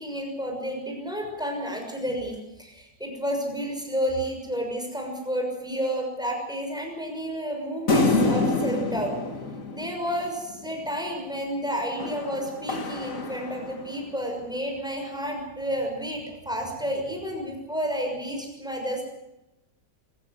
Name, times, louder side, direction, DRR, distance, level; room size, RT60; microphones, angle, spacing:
voice 1, 0.0-9.1 9.7-19.0, equal, ahead, 2 dB, 6.3 m, -31 dB
sound 1, 7.9-10.6 12.0-14.1, left 2 dB, 45° left, 2.5 m, -27 dB
24.5 x 15.0 x 7.9 m, 0.93 s
omnidirectional pair, 2.0 m